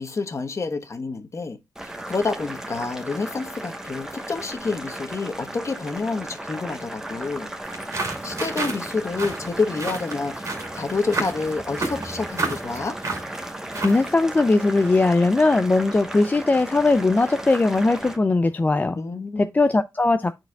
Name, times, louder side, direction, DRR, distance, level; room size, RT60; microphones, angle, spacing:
voice 1, 0.0-7.5 8.2-10.3 10.7-12.9 19.0-19.4, left 4 dB, 40° left, 1.1 m, -28 dB
Boiling, 1.8-18.2, right 1 dB, 5° right, 1.1 m, -36 dB
sound 1, 7.6-14.1, right 3 dB, 45° right, 2.1 m, -32 dB
voice 2, 13.8-19.0 19.4-20.5, left 3 dB, 20° left, 0.3 m, -19 dB
10.5 x 4.5 x 2.3 m
cardioid pair, 85°, 7 cm